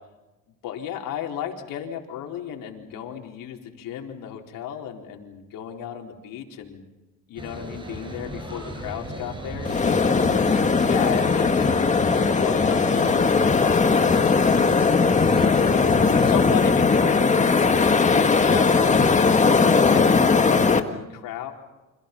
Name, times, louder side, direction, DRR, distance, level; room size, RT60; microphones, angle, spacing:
voice 1, 0.6-6.8 7.3-10.5 10.9-11.9 12.4-14.4 16.1-17.2 18.0-21.5, left 9 dB, 75° left, 2 dB, 4.5 m, -34 dB
sound 1, 7.4-16.3, equal, 15° right, 6.5 m, -36 dB
sound 2, 9.6-20.8, left 4 dB, 20° left, 1.7 m, -19 dB
29.5 x 26.5 x 5.5 m, 1.1 s
cardioid pair, 130°, 33 cm